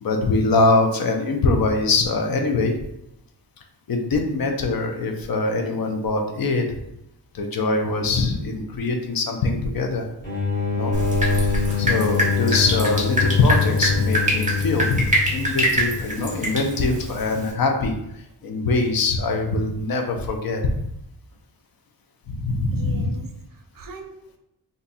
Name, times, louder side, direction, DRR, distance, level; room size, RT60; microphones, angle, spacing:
voice 1, 0.0-2.7 3.9-6.8 7.3-10.0 10.8-11.0 11.4-17.9 18.4-20.7 22.3-23.1, left 3 dB, 55° left, 4 dB, 0.6 m, -23 dB
sound 1, 10.2-15.6, left 5 dB, 25° left, 1.2 m, -24 dB
Drip, 10.9-17.5, equal, 15° right, 0.9 m, -25 dB
voice 2, 22.7-24.4, right 4 dB, 50° right, 3 dB, 0.5 m, -41 dB
2.6 x 2.2 x 4.0 m, 0.82 s
wide cardioid pair, 115°, 43 cm